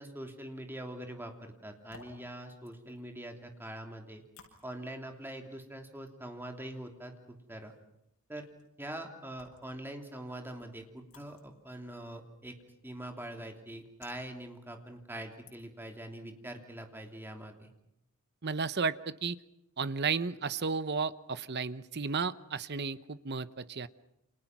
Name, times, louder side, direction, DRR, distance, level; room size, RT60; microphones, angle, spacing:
voice 1, 0.0-4.2 4.6-7.7 8.3-8.5 8.8-12.6 12.8-17.7, right 1 dB, 10° right, 3 dB, 3.1 m, -43 dB
sound 1, 1.6-16.0, left 4 dB, 85° left, 7.9 m, -63 dB
voice 2, 18.4-19.4 19.8-23.9, right 5 dB, 50° right, 14 dB, 0.9 m, -33 dB
29.5 x 27.5 x 6.1 m, 0.83 s
head